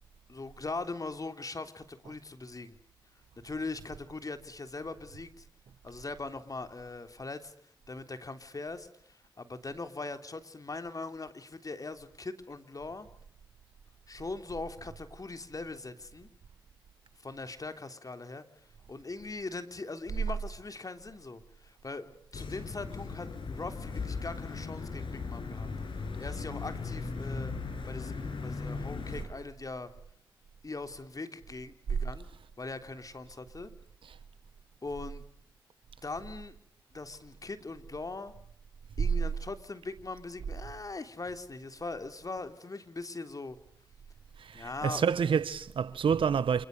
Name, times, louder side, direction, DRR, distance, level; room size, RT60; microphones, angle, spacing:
voice 1, 0.3-2.8 3.4-5.5 5.8-7.5 7.9-13.1 14.1-16.3 17.2-18.4 18.9-25.7 26.2-27.5 27.9-29.9 30.6-32.3 32.6-33.7 34.8-35.2 36.0-36.6 36.9-38.3 39.0-43.6 44.5-45.1, left 3 dB, 45° left, 3.6 m, -41 dB
sound 1, 22.3-29.2, left 4 dB, 75° left, 7.3 m, -38 dB
voice 2, 44.4-46.7, right 7 dB, 80° right, 1.5 m, -28 dB
28.5 x 28.0 x 6.8 m
cardioid pair, 50°, 9 cm